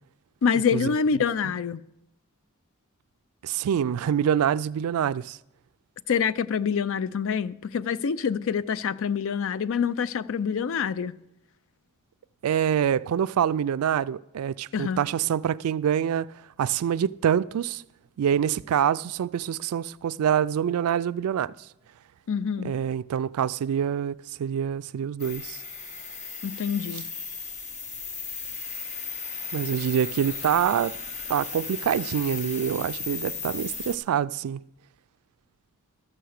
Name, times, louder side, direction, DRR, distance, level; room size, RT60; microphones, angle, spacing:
voice 1, 0.4-1.8 6.1-11.1 14.7-15.0 22.3-22.7 26.4-27.0, left 6 dB, 65° left, 0.4 m, -26 dB
voice 2, 3.4-5.4 12.4-17.8 18.2-21.5 22.6-25.6 29.5-31.0 31.3-34.6, right 9 dB, 80° right, 0.3 m, -26 dB
sound 1, 25.2-34.0, left 5 dB, 35° left, 1.0 m, -36 dB
13.0 x 6.9 x 6.4 m
head